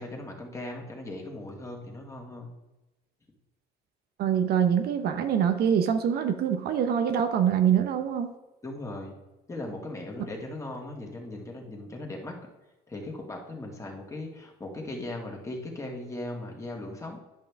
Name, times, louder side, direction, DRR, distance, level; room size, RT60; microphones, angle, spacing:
voice 1, 0.0-2.5 8.6-9.1 9.5-12.3 12.9-17.2, left 2 dB, 20° left, 0 dB, 2.0 m, -38 dB
voice 2, 4.2-8.3, right 8 dB, 70° right, 8 dB, 0.8 m, -24 dB
10.5 x 5.7 x 3.5 m, 1.0 s
cardioid pair, 110°, 17 cm